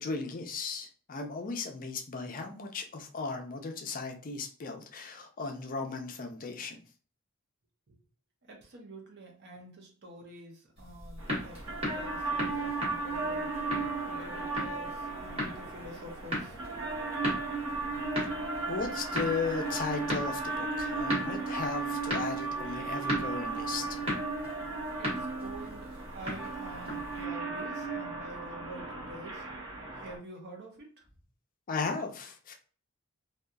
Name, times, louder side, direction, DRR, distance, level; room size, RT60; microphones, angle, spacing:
voice 1, 0.0-6.8 18.7-23.8 31.7-32.5, left 4 dB, 40° left, 4 dB, 0.5 m, -36 dB
voice 2, 8.4-13.6 14.0-16.6 25.0-29.5 29.9-31.1, right 1 dB, 50° right, 1 dB, 0.7 m, -48 dB
sound 1, 10.8-27.2, equal, 30° right, 1.2 m, -38 dB
sound 2, 11.2-30.2, right 3 dB, 75° right, 0.8 m, -35 dB
2.7 x 2.3 x 2.3 m, 0.40 s
head